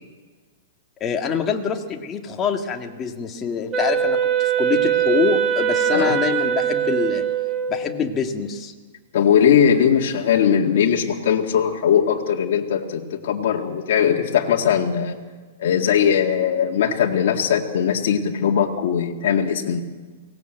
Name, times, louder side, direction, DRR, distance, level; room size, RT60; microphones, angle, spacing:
voice 1, 1.0-7.2 7.7-8.7, left 6 dB, 20° left, 3 dB, 1.8 m, -25 dB
Wind instrument woodwind instrument, 3.7-8.0, right 9 dB, 20° right, 1.7 m, -22 dB
voice 2, 9.1-15.2 15.6-19.8, left 8 dB, 60° left, 0 dB, 2.2 m, -19 dB
24.0 x 18.5 x 8.0 m, 1.4 s
hypercardioid pair, 160°, 0 cm